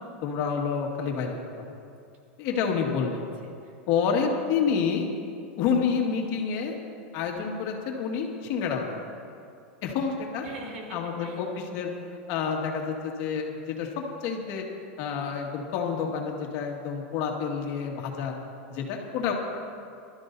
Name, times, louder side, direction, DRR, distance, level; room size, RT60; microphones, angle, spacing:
voice 1, 0.2-1.6 2.4-3.3 3.9-5.1 5.6-6.8 7.1-8.9 9.8-10.4 10.9-11.9 12.3-14.6 15.0-18.3 18.7-19.3, left 6 dB, 45° left, 0 dB, 1.9 m, -28 dB
voice 2, 3.0-3.8 10.4-11.5 18.9-19.1, right 2 dB, 85° right, -1 dB, 3.5 m, -44 dB
24.5 x 13.0 x 2.7 m, 2.4 s
supercardioid pair, 155°, 7 cm